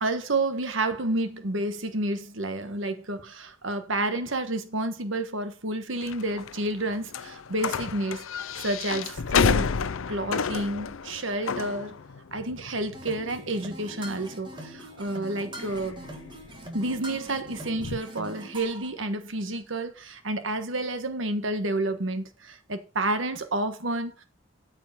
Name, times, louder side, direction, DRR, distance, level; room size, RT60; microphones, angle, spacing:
voice 1, 0.0-8.2 8.6-9.7 10.1-12.0 12.3-16.0 16.7-24.2, right 2 dB, 75° right, 1.4 m, -30 dB
sound 1, 6.0-18.0, left 5 dB, 90° left, 0.6 m, -32 dB
sound 2, 12.9-18.9, right 1 dB, 25° right, 2.0 m, -42 dB
13.0 x 4.9 x 5.5 m
head